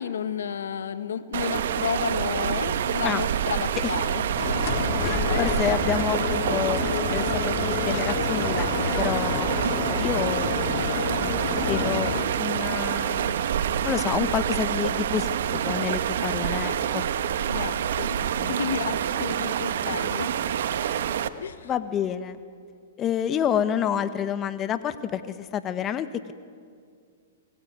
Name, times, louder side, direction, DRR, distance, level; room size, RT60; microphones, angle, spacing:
voice 1, 0.0-4.2 4.6-4.7 5.1-5.5 17.5-18.2 18.5-20.3 21.4-21.7, left 7 dB, 80° left, 12 dB, 1.5 m, -32 dB
sound 1, 1.3-21.3, right 9 dB, 70° right, 1.3 m, -27 dB
sound 2, 4.4-12.2, left 7 dB, 45° left, 2.7 m, -29 dB
voice 2, 5.0-6.8 7.1-8.7 9.0-10.8 11.2-13.4 13.8-17.1 18.4-18.5 21.6-22.4 23.0-26.3, left 9 dB, 25° left, 12 dB, 1.2 m, -29 dB
26.5 x 21.5 x 9.5 m, 2.2 s
hypercardioid pair, 125°, 0 cm